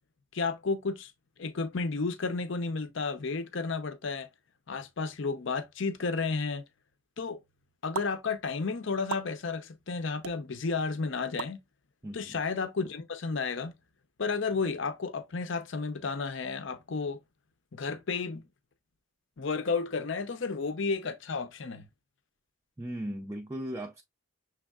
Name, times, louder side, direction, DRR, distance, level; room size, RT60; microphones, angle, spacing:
voice 1, 0.3-1.1 1.4-4.3 4.7-6.6 7.2-7.4 7.8-11.6 12.1-13.7 14.2-17.2 17.7-18.4 19.4-21.8, left 4 dB, 55° left, 0.6 m, -32 dB
sound 1, 7.9-8.1 9.1-9.3 10.2-10.4 11.4-11.6, right 7 dB, 80° right, 0.5 m, -34 dB
voice 2, 12.0-12.4 22.8-24.0, right 1 dB, 15° right, 0.3 m, -37 dB
6.3 x 3.4 x 2.3 m
head